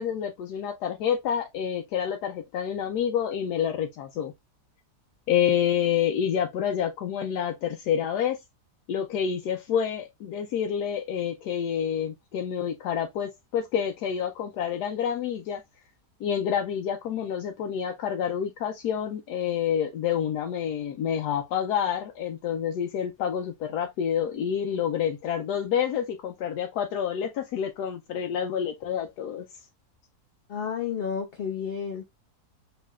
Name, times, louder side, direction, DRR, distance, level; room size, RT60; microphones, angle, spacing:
voice 1, 0.0-4.3 5.3-8.4 8.9-15.6 16.2-29.5, left 8 dB, 85° left, 1.2 m, -28 dB
voice 2, 30.5-32.1, left 7 dB, 60° left, 0.6 m, -31 dB
5.5 x 3.2 x 2.3 m
omnidirectional pair, 1.7 m